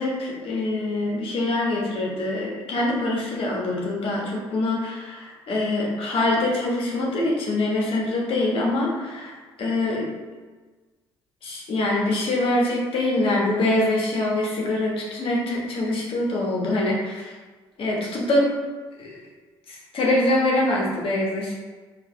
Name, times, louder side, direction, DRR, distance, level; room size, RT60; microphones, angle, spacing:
voice 1, 0.0-9.3 9.6-10.1 11.4-17.3 17.8-18.5 19.0-19.1 19.7-21.5, left 2 dB, 45° left, -3 dB, 1.4 m, -24 dB
4.6 x 2.8 x 3.8 m, 1.3 s
figure-of-eight pair, 50°, 12 cm